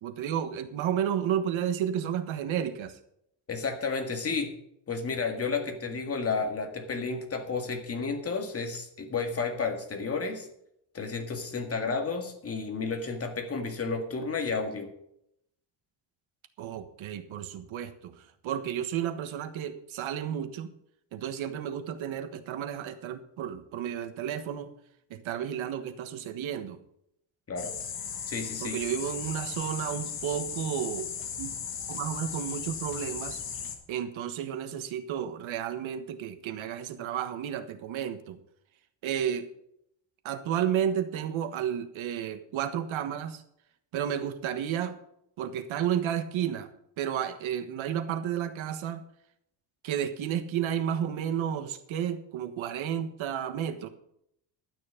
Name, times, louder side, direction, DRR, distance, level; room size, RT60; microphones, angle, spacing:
voice 1, 0.0-3.0 16.6-20.7 21.1-24.7 25.1-26.8 28.6-31.1 31.4-31.6 31.9-33.4 33.9-38.4 39.0-39.5 40.2-43.4 43.9-45.0 45.4-46.7 47.0-49.0 49.8-53.9, right 9 dB, 85° right, 9 dB, 1.5 m, -32 dB
voice 2, 3.5-4.5 4.9-10.5 10.9-14.9 27.5-27.8 28.3-28.8, left 4 dB, 30° left, 4 dB, 1.9 m, -32 dB
sound 1, 27.6-33.8, left 7 dB, 50° left, 2.1 m, -37 dB
12.0 x 9.5 x 5.1 m, 0.74 s
cardioid pair, 160°, 46 cm